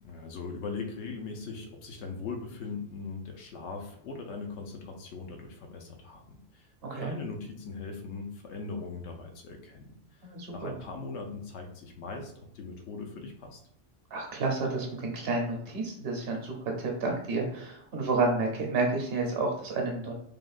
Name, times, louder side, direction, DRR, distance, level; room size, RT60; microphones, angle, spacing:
voice 1, 0.0-10.2 10.5-13.6, left 4 dB, 80° left, 3 dB, 0.9 m, -40 dB
voice 2, 10.2-10.7 14.1-20.1, right 3 dB, 60° right, 0 dB, 0.9 m, -30 dB
3.4 x 2.2 x 2.4 m, 0.65 s
omnidirectional pair, 1.2 m